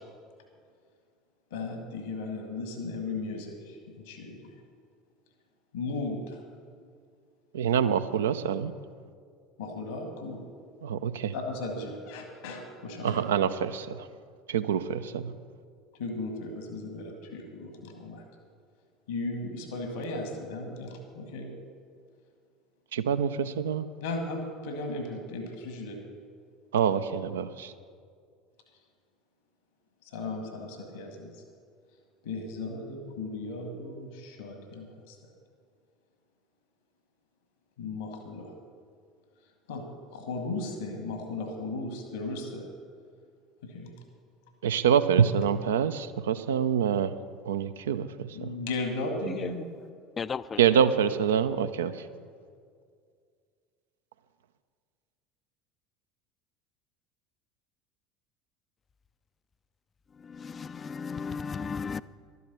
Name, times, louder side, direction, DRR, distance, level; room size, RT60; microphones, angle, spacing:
voice 1, 1.5-4.5 5.7-6.4 9.6-10.4 11.3-13.2 16.0-18.2 19.1-21.5 24.0-26.1 30.0-31.4 32.2-35.2 37.8-38.5 39.7-39.8 40.1-42.7 43.6-43.9 48.3-49.7, left 2 dB, 75° left, 1.5 m, -36 dB
voice 2, 7.5-8.7 10.8-11.3 13.0-14.1 14.5-15.3 22.9-23.9 26.7-27.7 44.6-47.1 47.5-48.5 50.6-51.9, right 8 dB, 75° right, 0.5 m, -26 dB
voice 3, 50.2-50.6 61.0-62.0, left 5 dB, 30° left, 0.4 m, -33 dB
12.0 x 9.5 x 6.8 m
figure-of-eight pair, 70°, 0 cm